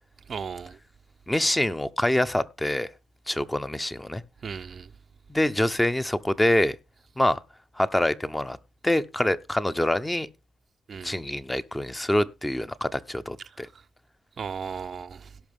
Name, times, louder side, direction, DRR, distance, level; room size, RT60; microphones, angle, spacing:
voice 1, 0.3-0.8 4.4-4.9 10.9-11.1 14.4-15.3, right 6 dB, 45° right, 0.6 m, -35 dB
voice 2, 1.3-2.9 3.3-4.2 5.3-6.8 7.2-7.4 7.8-8.6 8.8-10.3 11.0-13.7, left 1 dB, 10° left, 0.8 m, -25 dB
17.5 x 6.0 x 3.6 m
cardioid pair, 90°, 0 cm